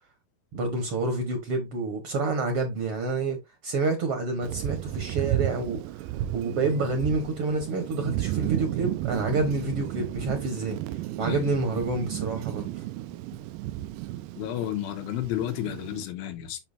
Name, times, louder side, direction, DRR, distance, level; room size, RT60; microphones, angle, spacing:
voice 1, 0.5-6.1 6.3-12.8, right 3 dB, 60° right, 1.5 m, -28 dB
Thunder, 4.4-16.1, right 14 dB, 85° right, 1.9 m, -33 dB
voice 2, 14.4-16.6, left 12 dB, 85° left, 2.7 m, -31 dB
7.1 x 5.7 x 2.7 m
omnidirectional pair, 4.2 m